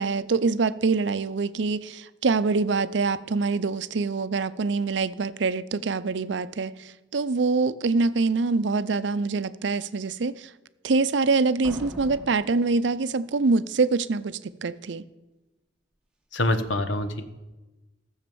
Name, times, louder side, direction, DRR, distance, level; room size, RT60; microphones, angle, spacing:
voice 1, 0.0-10.5 10.8-15.0, right 4 dB, 70° right, 0.5 m, -25 dB
Slam, 11.6-13.5, right 1 dB, 5° right, 1.2 m, -42 dB
voice 2, 16.3-17.2, left 1 dB, 85° left, 1.1 m, -25 dB
14.0 x 7.2 x 6.9 m
head